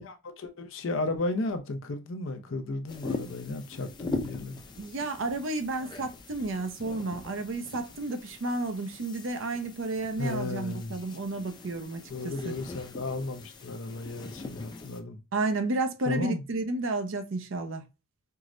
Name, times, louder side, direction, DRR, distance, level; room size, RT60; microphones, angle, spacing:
voice 1, 0.0-4.6 10.2-11.0 12.1-15.2 16.1-16.4, left 2 dB, 65° left, 0.6 m, -34 dB
sound 1, 2.9-15.0, left 3 dB, 20° left, 0.3 m, -42 dB
voice 2, 4.8-12.5 15.3-17.8, right 2 dB, 65° right, 0.6 m, -32 dB
4.6 x 2.1 x 2.4 m
head